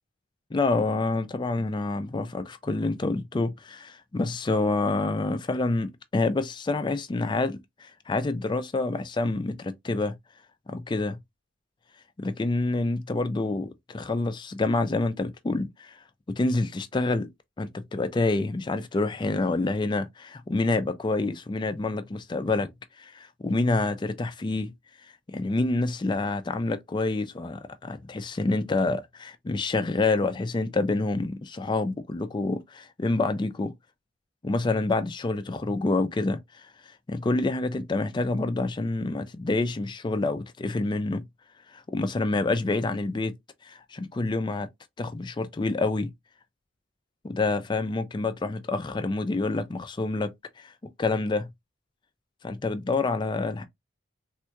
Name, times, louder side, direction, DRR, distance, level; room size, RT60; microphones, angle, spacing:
voice 1, 0.5-10.1 10.7-11.2 12.2-16.0 16.3-17.3 17.6-22.7 23.0-24.7 25.0-33.7 34.4-36.7 37.1-41.2 41.7-43.3 43.6-44.7 45.0-46.1 47.2-50.7 51.0-51.5 52.4-53.6, left 3 dB, 20° left, 0.3 m, -27 dB
3.5 x 2.2 x 2.9 m
head